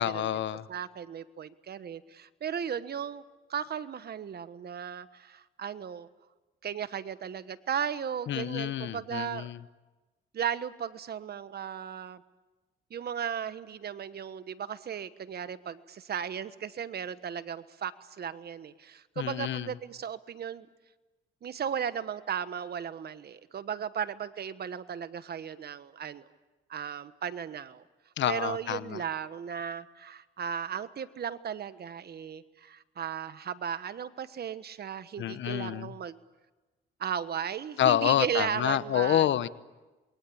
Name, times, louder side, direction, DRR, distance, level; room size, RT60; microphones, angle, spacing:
voice 1, 0.0-0.7 8.3-9.6 19.2-19.7 28.2-29.0 35.2-35.9 37.8-39.5, left 11 dB, 70° left, 15 dB, 1.0 m, -28 dB
voice 2, 0.7-3.2 3.5-6.1 6.6-9.5 10.3-12.2 12.9-20.7 21.4-26.3 26.7-27.8 28.3-36.2 37.0-39.3, right 8 dB, 55° right, 13 dB, 1.3 m, -36 dB
27.5 x 22.0 x 8.7 m, 1.2 s
cardioid pair, 90°, 20 cm